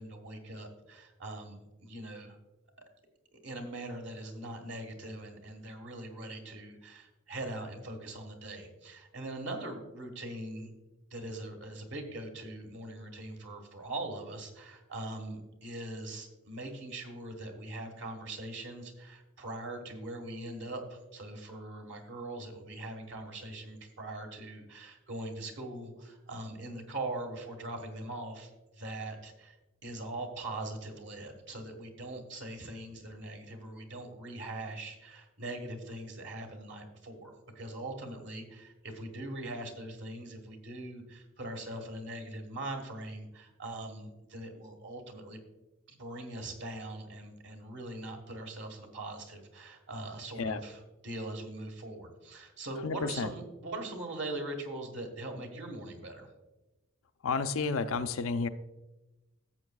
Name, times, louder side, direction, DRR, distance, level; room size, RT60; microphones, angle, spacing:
voice 1, 0.0-2.4 3.3-10.7 11.1-29.6 29.8-45.4 45.9-56.3, right 1 dB, 60° right, 4 dB, 1.5 m, -41 dB
voice 2, 52.8-53.3 57.2-58.5, left 4 dB, 80° left, 10 dB, 0.5 m, -31 dB
14.0 x 7.3 x 2.3 m, 1.0 s
head